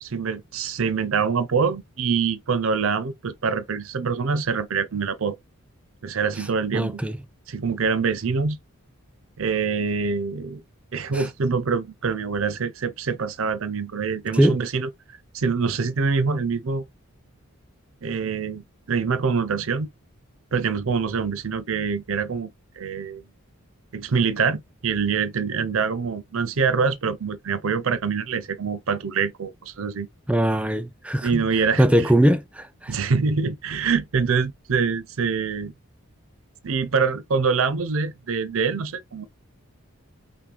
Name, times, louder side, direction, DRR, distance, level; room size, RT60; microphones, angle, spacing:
voice 1, 0.0-5.4 6.0-7.0 7.5-8.6 9.4-10.6 10.9-14.9 15.3-16.9 18.0-19.9 20.5-22.5 22.8-23.2 23.9-30.1 31.2-32.1 32.9-35.7 36.6-39.2, right 5 dB, 65° right, 0.5 m, -25 dB
voice 2, 6.7-7.1 11.1-11.3 14.3-14.6 30.3-31.4 31.8-33.0, right 1 dB, 5° right, 0.3 m, -20 dB
5.8 x 2.2 x 3.3 m
head